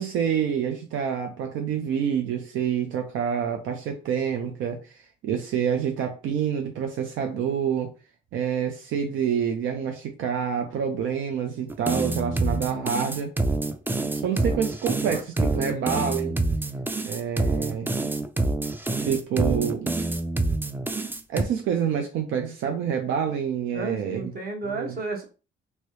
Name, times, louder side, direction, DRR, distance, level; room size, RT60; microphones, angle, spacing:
voice 1, 0.0-7.9 8.3-13.3 14.2-16.4 17.0-17.9 19.0-19.9 21.3-24.3 24.7-25.0, right 8 dB, 80° right, 4 dB, 0.5 m, -27 dB
sound 1, 11.7-21.4, right 2 dB, 10° right, 0.3 m, -26 dB
voice 2, 15.1-15.8 23.7-25.2, right 3 dB, 50° right, 2 dB, 1.2 m, -33 dB
3.0 x 2.7 x 3.1 m, 0.34 s
cardioid pair, 90°, 20 cm